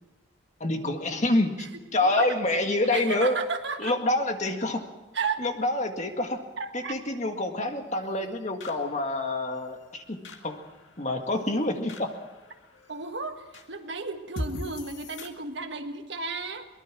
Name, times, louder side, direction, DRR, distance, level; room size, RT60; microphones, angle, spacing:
voice 1, 0.6-3.4 3.8-4.8 5.4-6.4 6.7-10.6 11.0-12.1, left 2 dB, 35° left, 5 dB, 1.8 m, -27 dB
voice 2, 2.9-4.0 5.1-5.4 6.6-6.9 12.9-16.7, right 4 dB, 60° right, 6 dB, 1.7 m, -33 dB
sound 1, 4.5-15.3, left 1 dB, 65° left, 2.2 m, -45 dB
23.0 x 20.0 x 6.1 m, 1.1 s
head